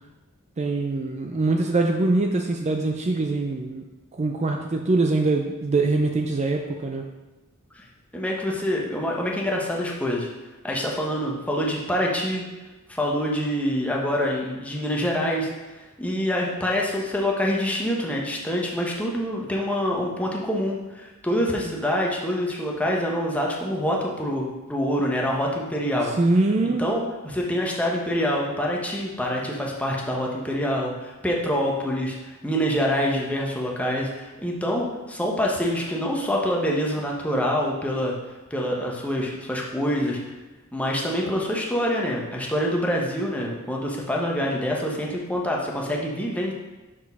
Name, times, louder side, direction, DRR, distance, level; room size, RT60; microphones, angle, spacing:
voice 1, 0.6-3.8 4.1-7.0 26.2-26.9, right 2 dB, 30° right, 3 dB, 0.5 m, -23 dB
voice 2, 8.1-10.3 10.6-12.4 12.9-15.5 16.0-26.1 26.8-38.1 38.5-40.3 40.7-46.5, equal, 5° left, -2 dB, 1.0 m, -26 dB
6.1 x 5.0 x 5.4 m, 1.1 s
head